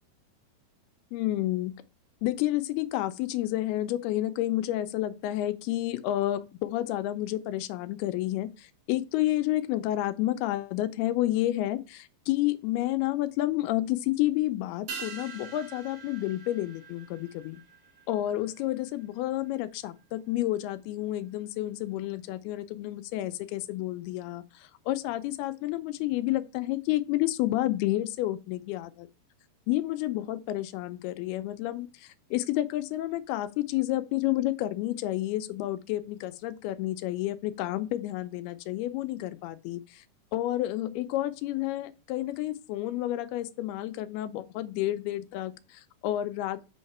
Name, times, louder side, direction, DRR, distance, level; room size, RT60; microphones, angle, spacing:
voice 1, 1.1-1.7 2.2-17.6 18.1-29.1 29.7-40.0 40.3-46.7, left 15 dB, 80° left, 2.5 m, -30 dB
sound 1, 14.9-19.6 19.9-20.0, right 5 dB, 45° right, 2.2 m, -45 dB
6.5 x 5.5 x 4.2 m
omnidirectional pair, 4.7 m